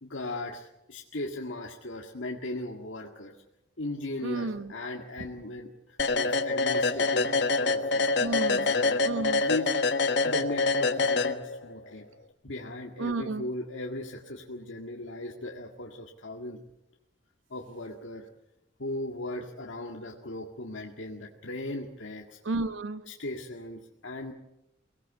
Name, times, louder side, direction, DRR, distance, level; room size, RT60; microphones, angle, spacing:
voice 1, 0.0-3.3 3.8-7.3 7.6-8.0 8.5-9.0 9.4-9.7 10.2-12.1 12.4-16.6 17.5-18.3 18.8-22.4 23.1-24.3, left 1 dB, 80° left, 0 dB, 2.0 m, -37 dB
voice 2, 4.2-4.7 8.2-8.7 9.0-9.4 13.0-13.5 22.4-23.0, right 3 dB, 85° right, 12 dB, 1.0 m, -32 dB
sound 1, 6.0-11.8, left 3 dB, 60° left, 1.4 m, -26 dB
24.0 x 18.0 x 8.5 m, 0.88 s
head